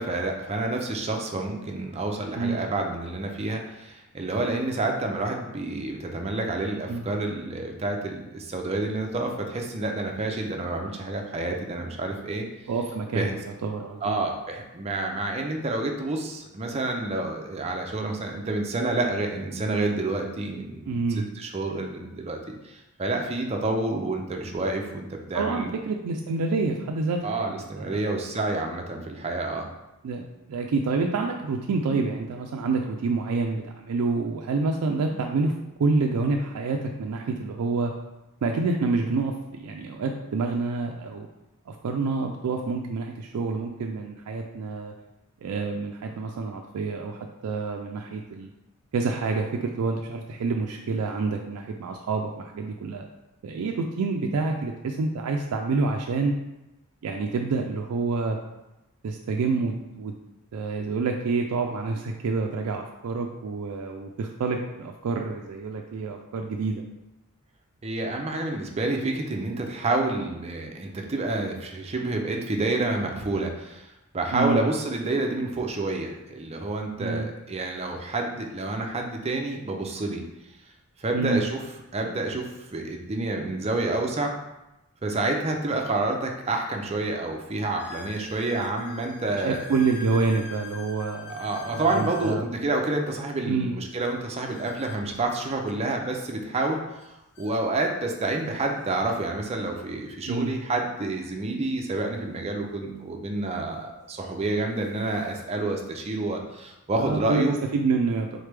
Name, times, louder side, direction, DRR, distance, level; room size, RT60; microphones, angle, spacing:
voice 1, 0.0-12.4 13.1-13.4 14.0-25.7 27.2-29.7 67.8-73.9 74.1-80.2 81.0-81.6 81.9-82.4 82.7-84.3 85.0-89.8 91.3-96.8 97.0-107.5, right 2 dB, 30° right, 2 dB, 0.5 m, -29 dB
voice 2, 12.7-14.2 20.9-21.3 25.3-28.1 30.0-35.5 35.8-37.9 38.4-41.3 41.7-44.9 45.4-48.5 48.9-53.1 53.4-56.3 57.0-58.4 59.0-60.1 60.5-66.8 74.3-74.6 77.0-77.3 81.1-81.4 89.4-91.5 91.7-92.4 93.5-93.7 100.3-100.6 107.0-107.4 107.7-108.4, right 4 dB, 80° right, 2 dB, 0.4 m, -28 dB
sound 1, 86.1-86.2 86.8-86.9 87.8-92.4 94.4-96.0 97.0-97.1 97.4-97.5 98.3-98.4 100.6-100.7 102.8-102.9 103.7-104.0 104.5-105.5, left 4 dB, 50° left, 0.4 m, -44 dB
3.9 x 3.2 x 3.3 m, 0.94 s
head